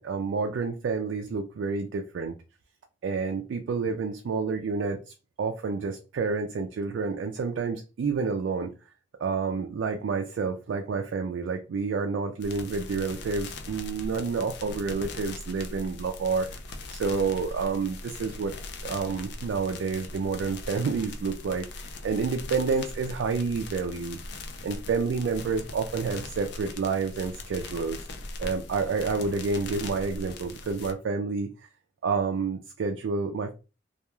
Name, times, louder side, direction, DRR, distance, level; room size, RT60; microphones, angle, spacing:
voice 1, 0.0-2.3 3.0-5.0 5.4-8.7 9.2-16.5 16.9-18.5 18.8-24.2 24.6-28.0 28.4-31.5 32.0-33.5, right 4 dB, 80° right, 0.3 m, -29 dB
sound 1, 12.4-30.9, left 2 dB, 65° left, 0.4 m, -40 dB
2.3 x 2.2 x 2.9 m
head